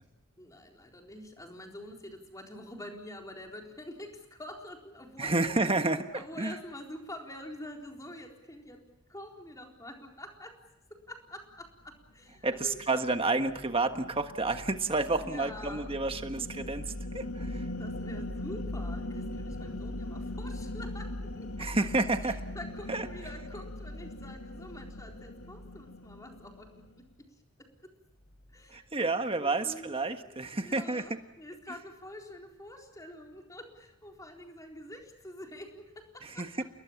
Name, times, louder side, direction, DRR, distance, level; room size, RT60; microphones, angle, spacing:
voice 1, 0.4-5.5 6.1-10.6 10.9-13.0 15.2-15.9 17.8-21.7 22.2-27.9 28.5-30.0 30.2-30.3 30.6-36.6, left 1 dB, 15° left, 1 dB, 4.0 m, -47 dB
voice 2, 5.2-6.5 12.4-17.7 21.6-22.4 22.9-23.1 28.7-31.0 36.2-36.6, right 3 dB, 25° right, 7 dB, 1.5 m, -30 dB
sound 1, 12.6-27.0, left 1 dB, 85° left, 2.3 m, -40 dB
29.5 x 21.0 x 7.3 m, 0.91 s
head